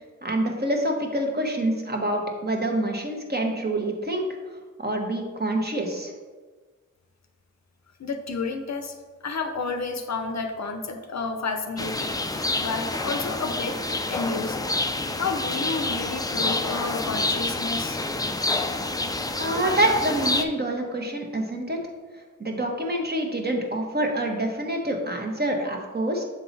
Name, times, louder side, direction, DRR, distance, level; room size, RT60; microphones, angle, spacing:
voice 1, 0.2-4.3 4.8-6.1 19.4-21.8 22.4-26.2, right 1 dB, 30° right, 2 dB, 1.1 m, -26 dB
voice 2, 8.0-8.9 9.2-14.7 15.1-18.0, left 4 dB, 55° left, 6 dB, 0.7 m, -31 dB
sound 1, 11.8-20.4, left 2 dB, 10° left, 0.4 m, -28 dB
7.0 x 3.7 x 4.0 m, 1.4 s
cardioid pair, 65°, 32 cm